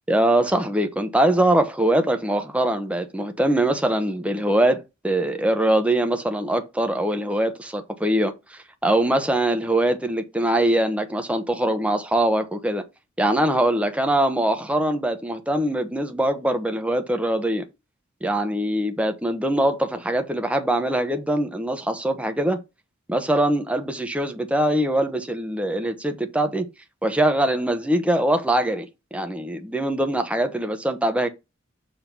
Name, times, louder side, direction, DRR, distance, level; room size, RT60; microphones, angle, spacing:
voice 1, 0.1-12.8 13.2-17.6 18.2-22.6 23.1-26.7 27.0-31.3, right 1 dB, 5° right, 1.0 m, -22 dB
7.0 x 3.8 x 5.9 m
head